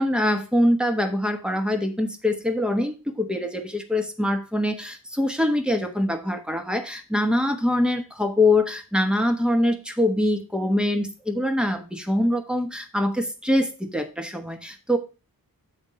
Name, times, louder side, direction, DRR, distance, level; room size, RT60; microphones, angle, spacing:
voice 1, 0.0-15.0, left 1 dB, 5° right, 5 dB, 1.0 m, -24 dB
7.7 x 3.5 x 5.5 m, 0.31 s
wide cardioid pair, 135°, 36 cm